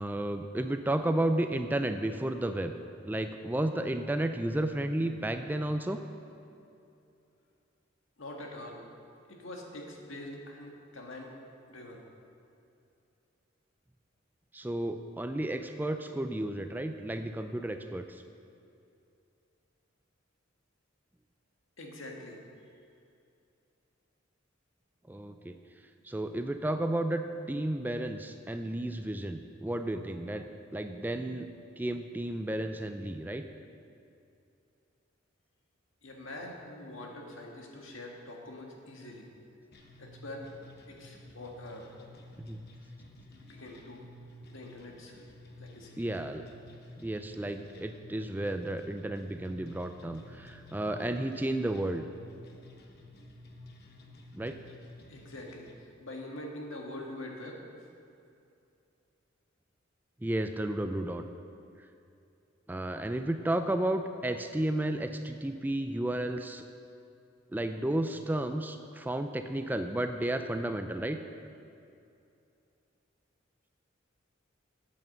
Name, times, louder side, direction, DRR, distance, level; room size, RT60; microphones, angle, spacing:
voice 1, 0.0-2.7 3.0-6.0 14.5-18.2 25.1-25.6 26.0-27.2 27.5-30.5 30.7-31.5 31.8-33.4 42.4-42.6 46.0-46.4 47.0-52.1 54.3-54.6 60.2-61.2 62.7-66.6 67.5-71.2, right 1 dB, 10° right, 7 dB, 0.4 m, -32 dB
voice 2, 8.2-8.8 9.3-11.4 11.7-12.1 21.8-22.4 36.0-39.3 40.0-40.5 40.9-41.9 43.3-44.1 44.5-45.2 45.6-46.0 55.1-57.6, left 1 dB, 85° left, 0 dB, 1.7 m, -44 dB
sound 1, 39.7-55.7, left 1 dB, 55° left, 1.1 m, -52 dB
8.8 x 8.6 x 6.6 m, 2.6 s
head